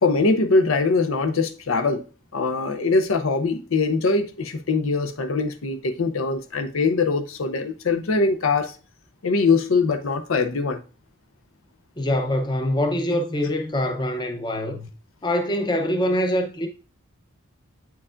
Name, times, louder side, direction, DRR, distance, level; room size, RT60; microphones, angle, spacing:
voice 1, 0.0-2.0 2.3-8.7 9.2-10.8, left 3 dB, 75° left, 0.6 m, -22 dB
voice 2, 12.0-14.9 15.2-16.7, left 1 dB, 20° left, 0.6 m, -24 dB
8.4 x 4.6 x 2.5 m
head